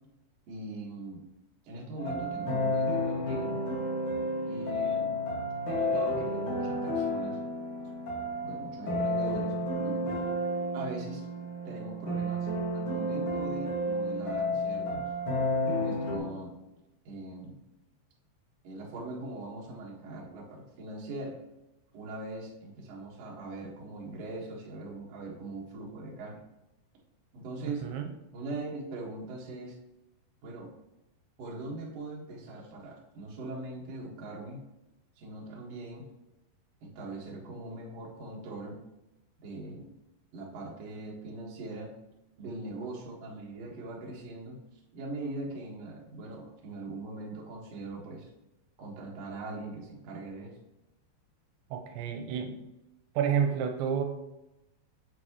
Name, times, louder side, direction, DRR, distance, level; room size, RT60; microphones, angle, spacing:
voice 1, 0.5-1.3 1.6-3.6 4.4-5.1 5.7-7.4 7.8-7.9 8.4-10.1 10.7-11.3 11.6-12.5 12.7-15.0 15.7-16.6 17.0-17.5 18.6-21.4 21.9-26.4 27.3-27.9 28.3-29.8 30.4-30.7 31.4-34.6 35.2-36.0 36.8-38.8 39.4-39.9 40.3-41.9 42.4-44.6 44.9-48.3 48.8-50.5, right 2 dB, 60° right, -3 dB, 1.6 m, -41 dB
sound 1, 2.0-16.2, left 1 dB, 50° left, 1.7 m, -31 dB
voice 2, 51.7-52.6 53.2-54.0, right 8 dB, 85° right, 5 dB, 2.9 m, -29 dB
7.1 x 6.3 x 3.0 m, 0.95 s
omnidirectional pair, 5.3 m